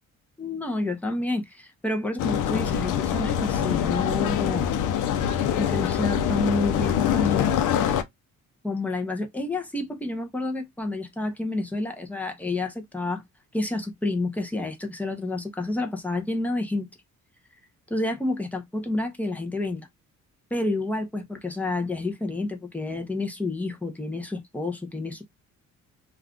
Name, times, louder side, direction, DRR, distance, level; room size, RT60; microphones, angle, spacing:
voice 1, 0.4-4.7 5.2-7.6 8.6-13.2 13.5-16.9 17.9-19.9 20.5-25.2, left 2 dB, 5° left, 0.5 m, -29 dB
sound 1, 2.2-8.0, left 9 dB, 85° left, 0.5 m, -24 dB
2.3 x 2.3 x 3.6 m
cardioid pair, 155°, 30 cm